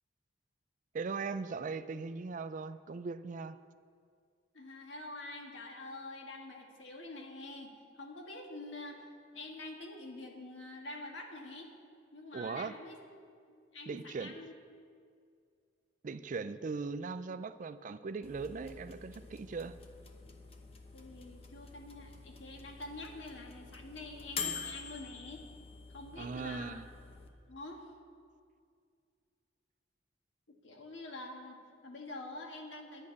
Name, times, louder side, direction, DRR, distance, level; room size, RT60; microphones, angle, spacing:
voice 1, 0.9-3.6 12.3-12.7 13.9-14.3 16.0-19.8 26.2-26.8, right 4 dB, 45° right, 13 dB, 0.4 m, -39 dB
voice 2, 4.5-11.7 12.1-13.0 13.5-14.5 20.9-25.5 25.9-26.8 27.5-27.9 30.5-33.1, left 2 dB, 85° left, 2 dB, 1.6 m, -46 dB
sound 1, 18.2-27.3, left 5 dB, 30° left, 0.9 m, -46 dB
10.5 x 6.4 x 8.4 m, 2.3 s
head